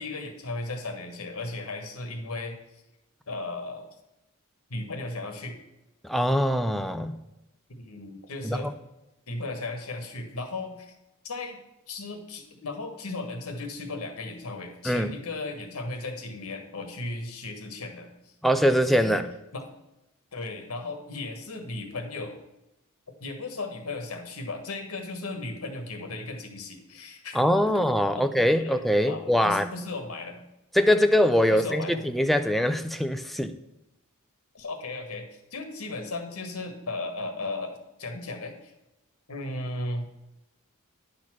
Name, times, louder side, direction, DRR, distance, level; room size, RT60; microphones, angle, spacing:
voice 1, 0.0-2.5 3.3-3.9 4.7-5.6 7.8-8.7 9.3-10.9 11.2-11.6 11.9-18.1 19.1-19.2 19.5-19.7 20.3-22.4 23.2-27.4 27.6-27.8 28.1-28.3 28.6-28.8 29.1-30.5 31.5-32.0 34.5-38.7 39.3-40.1, left 2 dB, 70° left, 5 dB, 1.5 m, -36 dB
voice 2, 6.0-7.1 8.4-8.7 14.8-15.1 18.4-19.3 27.3-29.7 30.7-33.6, equal, ahead, 7 dB, 0.4 m, -23 dB
10.5 x 4.2 x 6.1 m, 0.95 s
head